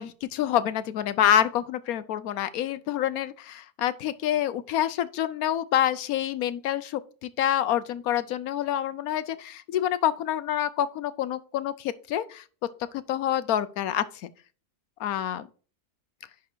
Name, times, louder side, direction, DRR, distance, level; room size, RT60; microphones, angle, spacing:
voice 1, 0.0-12.4 13.1-14.0 15.0-15.5, left 11 dB, 75° left, 1.0 m, -27 dB
11.0 x 3.6 x 4.4 m
omnidirectional pair, 1.6 m